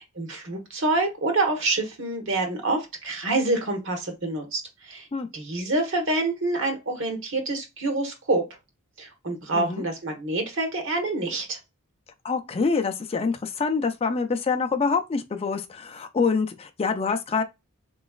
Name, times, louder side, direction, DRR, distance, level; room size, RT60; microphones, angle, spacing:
voice 1, 0.1-5.1 5.3-8.4 9.0-11.6, right 2 dB, 60° right, 1.3 m, -27 dB
voice 2, 9.5-9.8 12.2-17.4, left 4 dB, 25° left, 0.4 m, -26 dB
3.9 x 3.0 x 2.3 m
head